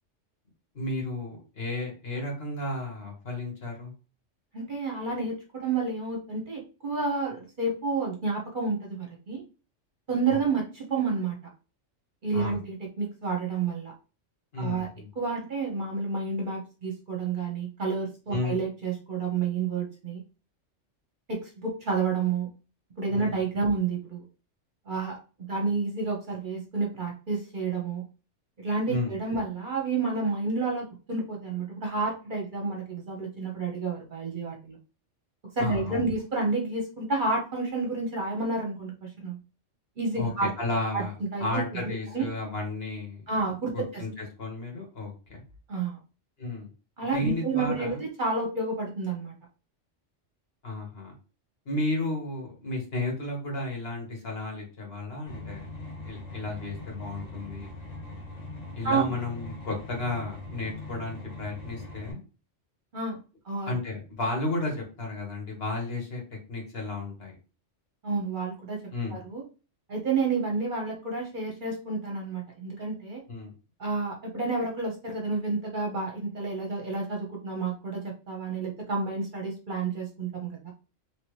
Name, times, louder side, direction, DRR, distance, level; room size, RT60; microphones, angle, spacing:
voice 1, 0.7-3.9 10.3-10.4 12.3-12.6 14.5-15.1 18.3-18.6 23.1-23.4 28.9-29.1 35.6-36.0 40.2-43.3 43.7-45.4 46.4-46.7 47.1-48.0 50.6-51.1 51.7-55.7 56.0-57.7 58.8-62.2 63.7-66.2 66.5-67.3 68.9-69.2 73.3-73.5, left 2 dB, 55° left, 0 dB, 1.4 m, -33 dB
voice 2, 4.5-9.4 10.1-11.4 12.2-13.9 14.6-14.9 15.2-20.2 21.3-22.5 23.0-24.2 24.9-25.2 25.5-28.0 28.6-34.8 35.6-39.4 40.0-40.5 40.9-41.0 41.3-42.3 43.3-44.0 45.7-46.0 47.0-49.3 58.8-59.1 62.9-63.2 63.4-63.8 68.0-68.8 69.1-69.4 69.9-73.2 73.8-78.0 78.3-80.7, right 4 dB, 45° right, 0 dB, 0.8 m, -30 dB
sound 1, 55.3-62.1, left 2 dB, 35° left, 1.2 m, -41 dB
3.1 x 2.8 x 3.1 m, 0.34 s
omnidirectional pair, 1.3 m